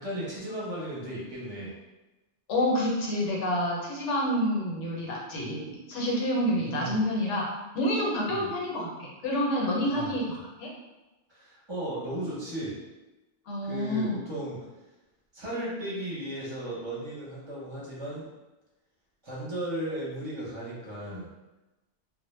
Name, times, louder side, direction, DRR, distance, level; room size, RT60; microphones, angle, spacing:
voice 1, 0.0-1.7 6.6-7.0 8.3-8.5 9.8-10.1 11.3-12.7 13.6-14.6 15.3-18.3 19.2-21.3, right 1 dB, 30° right, -7 dB, 0.7 m, -35 dB
voice 2, 2.5-7.5 7.7-10.2 10.6-10.7 13.5-14.2, equal, 85° left, -3 dB, 1.0 m, -28 dB
2.1 x 2.1 x 3.1 m, 1.1 s
omnidirectional pair, 1.2 m